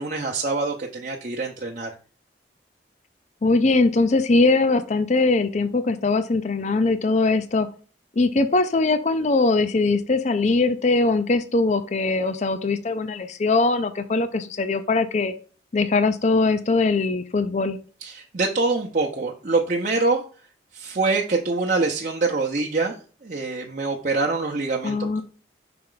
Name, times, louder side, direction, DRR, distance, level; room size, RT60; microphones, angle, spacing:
voice 1, 0.0-1.9 18.0-20.2 20.7-22.9 23.2-25.2, right 3 dB, 45° right, -1 dB, 0.8 m, -25 dB
voice 2, 3.4-7.7 8.2-15.3 15.7-17.8 24.8-25.2, left 3 dB, 40° left, 11 dB, 0.5 m, -21 dB
5.9 x 4.3 x 3.8 m, 0.39 s
head